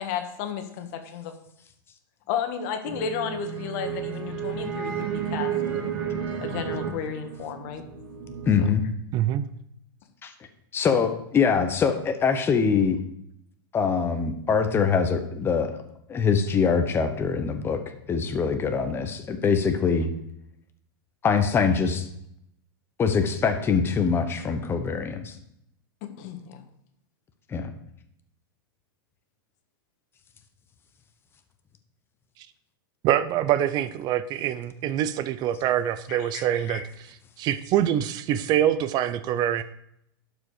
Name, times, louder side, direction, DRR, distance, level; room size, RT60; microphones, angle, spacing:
voice 1, 0.0-1.3 2.3-5.9 6.4-7.8 8.6-8.7 26.2-26.6 36.1-36.8, left 8 dB, 55° left, 6 dB, 1.6 m, -33 dB
sound 1, 2.8-8.7, right 8 dB, 60° right, 3.0 m, -32 dB
voice 2, 8.5-8.8 10.2-10.3 10.7-13.0 13.7-15.8 16.1-17.8 18.1-20.1 21.2-22.1 23.0-25.3 27.5-27.7, left 6 dB, 20° left, 7 dB, 1.0 m, -23 dB
voice 3, 9.1-9.5 33.0-39.6, right 11 dB, 35° right, 14 dB, 0.5 m, -25 dB
11.5 x 5.0 x 5.0 m, 0.75 s
supercardioid pair, 135°, 12 cm